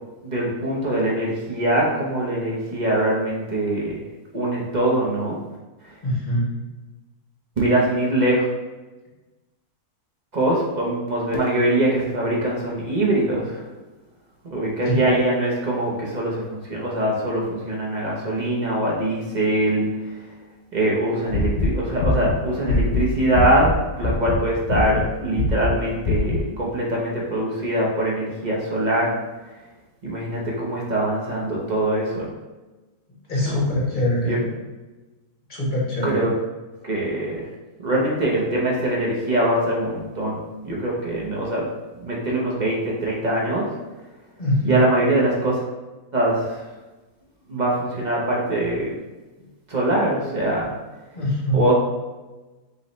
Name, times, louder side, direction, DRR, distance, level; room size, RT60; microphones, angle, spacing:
voice 1, 0.2-4.0 4.3-5.4 7.6-8.5 10.3-13.6 14.4-19.9 20.7-29.1 30.0-32.3 33.4-33.6 34.2-34.4 36.0-36.3 36.8-37.5 37.8-41.7 42.0-43.7 44.6-45.6 46.1-46.6 47.5-48.9 49.7-50.7 51.5-51.7, right 1 dB, 35° right, -4 dB, 0.8 m, -23 dB
voice 2, 6.0-6.5 14.8-15.0 33.3-34.5 35.5-36.3 44.4-44.8 49.4-49.5 51.1-51.6, equal, 30° left, -5 dB, 1.6 m, -23 dB
sound 1, 21.3-23.8 24.0-24.4 24.7-25.1 25.3-25.7 26.0-26.4, left 3 dB, 65° left, 0.6 m, -22 dB
5.3 x 3.2 x 3.1 m, 1.2 s
omnidirectional pair, 1.6 m